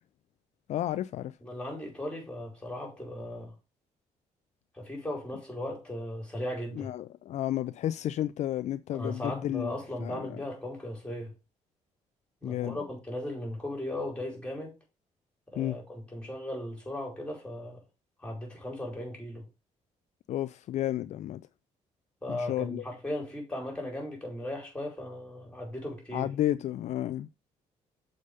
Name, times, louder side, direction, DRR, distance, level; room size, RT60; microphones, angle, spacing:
voice 1, 0.7-1.4 6.7-9.7 10.0-10.4 12.4-12.8 15.6-15.8 20.3-21.4 22.3-22.8 26.1-27.3, left 12 dB, 65° left, 0.4 m, -32 dB
voice 2, 1.4-3.5 4.7-6.9 8.9-11.3 12.4-14.7 15.5-17.8 18.2-19.5 22.2-26.3, left 1 dB, 10° left, 5.0 m, -37 dB
6.7 x 5.1 x 5.3 m
cardioid pair, 115°, 13 cm